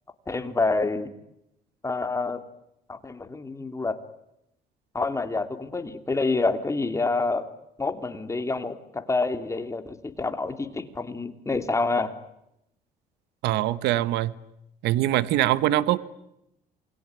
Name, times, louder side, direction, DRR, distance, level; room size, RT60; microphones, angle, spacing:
voice 1, 0.3-1.1 1.8-2.4 2.9-4.0 4.9-7.5 7.8-12.1, left 3 dB, 15° left, 8 dB, 3.0 m, -27 dB
voice 2, 13.4-14.3 14.8-16.0, right 14 dB, 85° right, 17 dB, 1.2 m, -23 dB
28.5 x 21.5 x 9.6 m, 0.83 s
cardioid pair, 110°, 17 cm